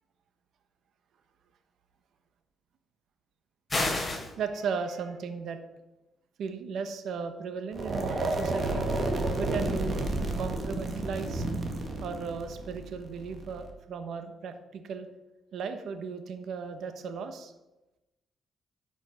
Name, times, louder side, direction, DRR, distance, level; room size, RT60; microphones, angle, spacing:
sound 1, 3.7-4.3, left 2 dB, 20° left, 3.9 m, -28 dB
voice 1, 4.4-5.6 6.4-8.8 9.4-10.1 10.4-15.1 15.5-17.5, right 5 dB, 70° right, 8 dB, 1.1 m, -36 dB
sound 2, 7.7-13.7, right 2 dB, 40° right, 1.7 m, -31 dB
11.0 x 6.0 x 5.7 m, 1.0 s
cardioid pair, 90°, 0 cm